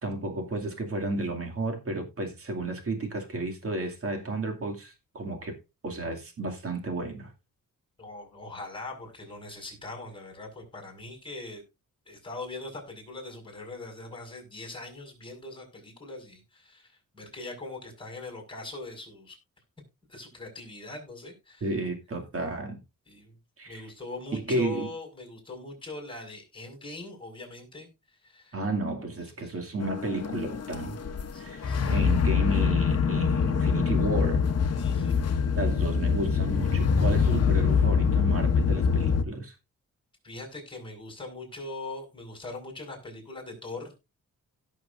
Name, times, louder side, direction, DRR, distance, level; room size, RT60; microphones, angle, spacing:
voice 1, 0.0-5.6 5.8-7.3 21.6-22.8 23.6-23.8 24.3-24.9 28.5-31.0 31.4-34.5 35.6-39.5, right 2 dB, 45° right, 2.4 m, -32 dB
voice 2, 8.0-11.6 12.1-19.4 20.1-21.7 23.1-23.4 23.7-27.9 28.2-28.6 29.0-29.1 29.4-29.5 31.3-32.0 34.7-35.2 40.2-43.9, left 2 dB, 15° left, 5.3 m, -41 dB
sound 1, 29.8-39.2, left 6 dB, 50° left, 1.0 m, -24 dB
17.0 x 6.5 x 2.6 m
wide cardioid pair, 115°, 32 cm